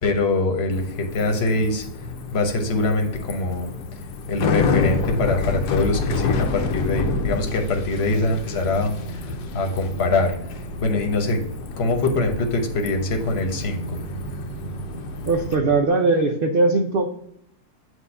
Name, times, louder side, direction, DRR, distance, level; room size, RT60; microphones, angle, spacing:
voice 1, 0.0-1.8 2.3-3.7 4.3-10.4 10.8-11.5 11.8-14.0, left 2 dB, 45° left, 4 dB, 1.2 m, -23 dB
Bicycle, 0.7-15.5, left 4 dB, 80° left, 1.2 m, -28 dB
sound 1, 8.0-15.9, right 3 dB, 30° right, 3.2 m, -38 dB
voice 2, 15.3-17.1, right 3 dB, 70° right, 3 dB, 0.5 m, -20 dB
8.1 x 2.7 x 5.4 m, 0.73 s
omnidirectional pair, 1.7 m